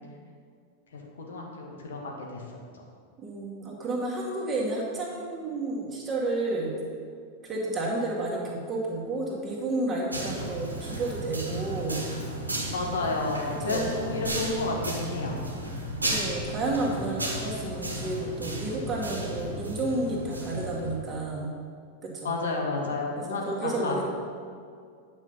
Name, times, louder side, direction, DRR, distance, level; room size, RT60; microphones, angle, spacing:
voice 1, 0.9-2.5 12.7-15.4 22.2-24.0, left 3 dB, 65° left, -1 dB, 1.5 m, -31 dB
voice 2, 3.2-6.7 7.4-12.0 13.6-13.9 16.0-21.5 22.0-22.3 23.5-24.0, right 2 dB, 20° right, -3 dB, 2.0 m, -31 dB
sound 1, 10.1-21.0, right 1 dB, 80° right, 1.4 m, -34 dB
9.5 x 5.5 x 5.5 m, 2.2 s
figure-of-eight pair, 90°, 0 cm